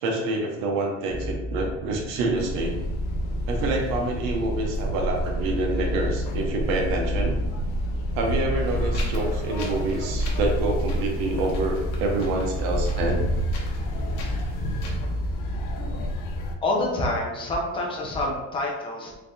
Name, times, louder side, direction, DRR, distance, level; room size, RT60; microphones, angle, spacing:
voice 1, 0.0-2.8 3.5-7.4 8.1-13.3, right 2 dB, 80° right, 2 dB, 0.8 m, -27 dB
sound 1, 1.1-16.1, equal, 40° right, 0.9 m, -32 dB
sound 2, 2.4-16.6, equal, 90° left, 0.6 m, -30 dB
Wind, 8.6-15.0, left 2 dB, 60° left, 0.9 m, -41 dB
voice 2, 16.6-19.1, left 1 dB, 15° left, -1 dB, 0.4 m, -27 dB
3.4 x 3.3 x 2.6 m, 1.0 s
cardioid pair, 180°, 34 cm